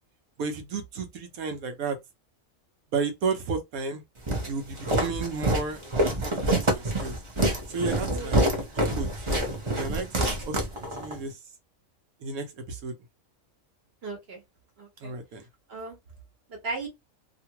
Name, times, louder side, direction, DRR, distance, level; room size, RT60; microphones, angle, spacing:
voice 1, 0.4-2.0 2.9-4.0 4.4-7.2 7.7-9.1 9.7-11.3 12.2-12.9 15.0-15.4, right 4 dB, 80° right, 1.2 m, -33 dB
Walk footsteps, 4.3-11.2, right 1 dB, 25° right, 0.7 m, -26 dB
voice 2, 8.1-8.4 14.0-14.4 14.8-15.1 15.7-16.0 16.5-16.9, right 3 dB, 50° right, 1.1 m, -36 dB
2.9 x 2.5 x 2.8 m
omnidirectional pair, 1.5 m